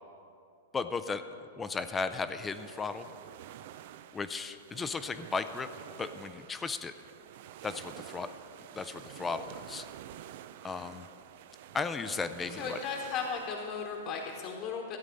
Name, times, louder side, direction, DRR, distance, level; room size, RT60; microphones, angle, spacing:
voice 1, 0.7-1.2 1.6-3.1 4.1-5.7 6.0-6.9 7.6-8.3 8.7-9.9 10.6-11.1 11.7-12.8, left 4 dB, 15° left, 10 dB, 0.5 m, -35 dB
sound 1, 2.4-14.4, right 11 dB, 60° right, 0.4 m, -49 dB
voice 2, 12.6-15.0, left 5 dB, 45° left, 0 dB, 1.3 m, -36 dB
13.0 x 8.2 x 5.3 m, 2.6 s
hypercardioid pair, 120°, 0 cm